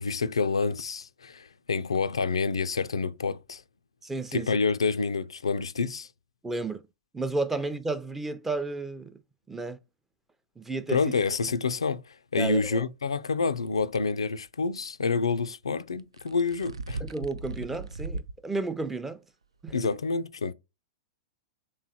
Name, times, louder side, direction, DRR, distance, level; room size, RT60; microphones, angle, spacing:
voice 1, 0.0-3.6 4.3-6.1 10.9-17.0 19.7-20.5, left 4 dB, 85° left, 0.3 m, -28 dB
voice 2, 4.0-4.6 6.4-6.8 7.1-9.1 9.5-9.8 10.6-11.0 12.4-12.8 17.0-19.2 19.6-19.9, right 3 dB, 10° right, 0.5 m, -32 dB
sound 1, 13.8-14.0 16.0-18.4 18.8-18.9 19.7-19.8, right 3 dB, 85° right, 0.3 m, -37 dB
3.5 x 3.1 x 4.0 m
hypercardioid pair, 105°, 3 cm